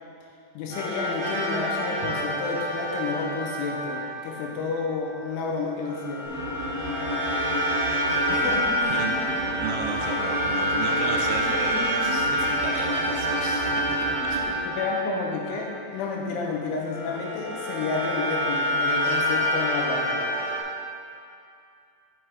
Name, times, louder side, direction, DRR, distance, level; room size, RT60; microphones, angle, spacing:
voice 1, 0.5-6.3 8.3-8.9 14.5-20.3, left 4 dB, 85° left, -1 dB, 3.2 m, -30 dB
sound 1, 0.7-4.9 5.8-16.3 16.8-20.6, equal, 45° right, 2.1 m, -27 dB
sound 2, 6.3-14.4, equal, 60° left, 2.6 m, -33 dB
Bowed string instrument, 8.8-13.0, right 1 dB, 65° right, 2.2 m, -47 dB
voice 2, 9.6-13.9 14.1-14.5, right 6 dB, 80° right, 1 dB, 2.7 m, -35 dB
6.5 x 5.9 x 4.9 m, 2.4 s
omnidirectional pair, 5.6 m